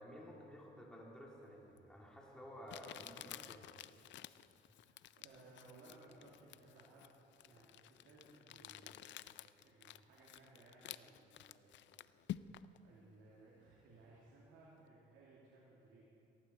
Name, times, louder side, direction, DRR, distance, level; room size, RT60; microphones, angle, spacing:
voice 1, 0.0-3.7, equal, 5° left, -3 dB, 2.7 m, -53 dB
Crumpling crinkling, 1.8-1.9 2.7-12.8, left 12 dB, 65° left, 0.4 m, -52 dB
voice 2, 4.6-7.1 7.4-9.3 9.6-16.0, right 2 dB, 85° right, -5 dB, 2.3 m, -62 dB
17.5 x 15.0 x 4.3 m, 2.9 s
cardioid pair, 90°, 20 cm